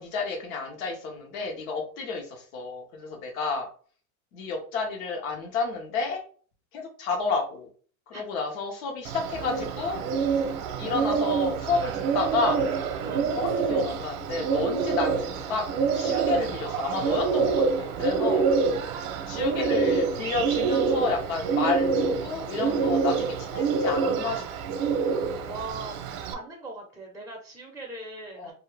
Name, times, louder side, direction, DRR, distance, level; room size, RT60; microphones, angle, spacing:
voice 1, 0.0-3.7 4.3-6.2 6.7-7.7 8.1-10.0 10.8-12.6 13.3-15.7 15.9-18.5 19.3-24.4 28.4-28.5, left 4 dB, 75° left, 3 dB, 1.1 m, -30 dB
Bird, 9.0-26.3, right 5 dB, 60° right, 0.7 m, -26 dB
voice 2, 18.9-19.4 25.1-26.0 26.3-28.5, right 3 dB, 5° right, -3 dB, 0.5 m, -40 dB
2.6 x 2.4 x 3.2 m, 0.43 s
supercardioid pair, 125°, 42 cm